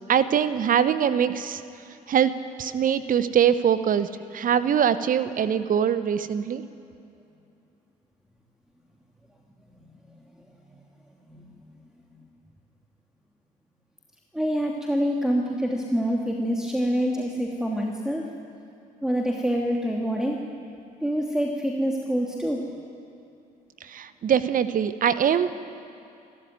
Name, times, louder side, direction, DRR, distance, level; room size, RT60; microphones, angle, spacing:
voice 1, 0.1-1.6 2.1-2.3 2.6-6.6 23.9-25.5, right 8 dB, 40° right, 13 dB, 1.1 m, -23 dB
voice 2, 14.3-18.2 19.0-20.4 21.0-22.7, equal, 5° right, 0 dB, 2.7 m, -26 dB
27.5 x 14.5 x 9.5 m, 2.6 s
figure-of-eight pair, 45°, 21 cm